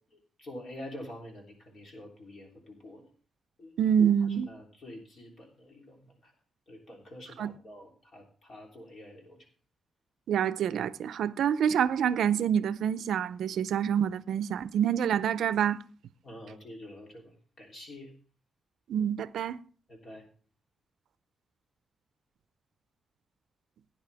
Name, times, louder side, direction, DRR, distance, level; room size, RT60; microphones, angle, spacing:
voice 1, 0.1-3.1 3.6-3.7 4.5-6.3 6.7-9.5 16.2-18.1 19.9-20.3, left 1 dB, 40° left, 3.3 m, -47 dB
voice 2, 3.8-4.5 7.4-7.5 10.3-15.8 18.9-19.6, right 8 dB, 85° right, 0.5 m, -27 dB
16.5 x 9.7 x 3.4 m
wide cardioid pair, 175°, 0 cm